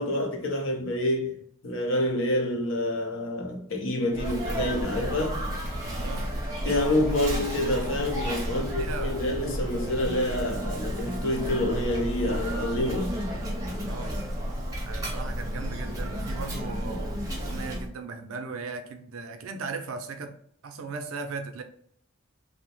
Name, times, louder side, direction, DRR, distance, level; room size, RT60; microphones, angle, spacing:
voice 1, 0.0-1.4 1.6-5.4 6.6-13.1, left 1 dB, 65° left, 0.6 m, -27 dB
Sneeze, 4.1-17.9, equal, 15° right, 0.6 m, -32 dB
voice 2, 6.0-6.3 8.4-9.3 13.9-14.3 14.9-17.2 17.4-20.4 20.6-21.6, right 4 dB, 80° right, 0.4 m, -37 dB
2.7 x 2.0 x 3.0 m
head